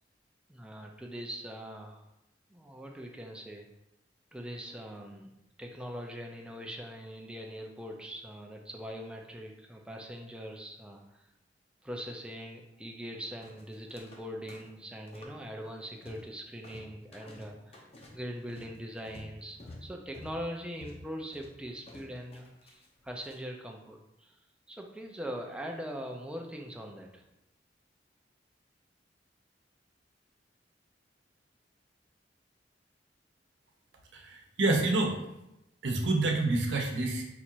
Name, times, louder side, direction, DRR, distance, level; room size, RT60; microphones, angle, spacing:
voice 1, 0.5-2.0 2.5-3.7 4.3-5.3 5.6-11.2 11.8-17.8 18.1-24.4 24.7-27.2, equal, 5° right, 1 dB, 0.4 m, -42 dB
sound 1, 13.4-14.2 14.5-15.4 15.7-16.3 16.6-23.4, left 1 dB, 35° left, 0.7 m, -51 dB
voice 2, 34.1-35.2 35.8-37.2, right 2 dB, 85° right, 1 dB, 0.8 m, -28 dB
4.1 x 2.5 x 4.4 m, 0.88 s
head